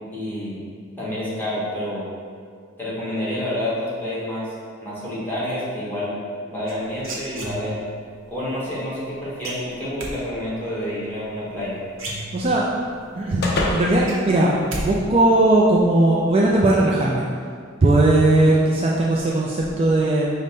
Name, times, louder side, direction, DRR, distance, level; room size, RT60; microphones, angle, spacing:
voice 1, 0.1-0.6 1.0-2.0 2.8-4.5 4.8-6.2 6.5-7.8 8.3-11.8, left 1 dB, 10° left, -10 dB, 1.2 m, -28 dB
sound 1, 6.7-8.0 9.4-10.1 11.5-11.6 11.9-12.8 13.2-13.3 13.6-14.9 15.1-15.6, right 1 dB, 70° right, 0.8 m, -32 dB
sound 2, 10.8-15.2, left 1 dB, 50° left, 0.5 m, -31 dB
voice 2, 12.3-12.7 13.2-17.3 17.8-20.3, right 2 dB, 30° right, -4 dB, 0.3 m, -18 dB
5.2 x 2.1 x 4.1 m, 2.1 s
head